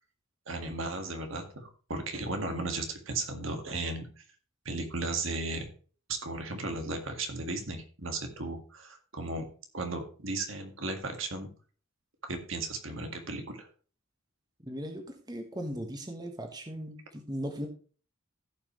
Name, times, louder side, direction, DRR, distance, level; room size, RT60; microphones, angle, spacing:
voice 1, 0.5-4.1 4.7-5.7 6.1-9.5 9.7-11.5 12.3-13.7, right 2 dB, 65° right, 5 dB, 1.9 m, -35 dB
voice 2, 14.6-17.7, equal, 20° right, 3 dB, 1.4 m, -38 dB
16.0 x 5.9 x 3.1 m, 0.40 s
head